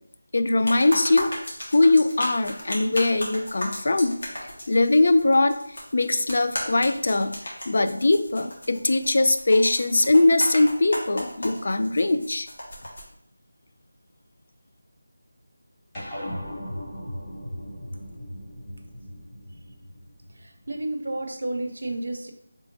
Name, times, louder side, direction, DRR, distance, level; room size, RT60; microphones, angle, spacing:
voice 1, 0.3-1.3 1.7-4.2 4.7-7.4 7.7-12.5, left 2 dB, 55° left, 9 dB, 0.3 m, -21 dB
sound 1, 0.6-13.0, equal, 75° left, 1.6 m, -35 dB
sound 2, 15.9-20.7, equal, 20° left, 1.1 m, -37 dB
voice 2, 20.3-22.3, right 1 dB, 70° right, 5 dB, 0.7 m, -32 dB
4.3 x 3.3 x 2.6 m, 0.70 s
figure-of-eight pair, 170°, 0 cm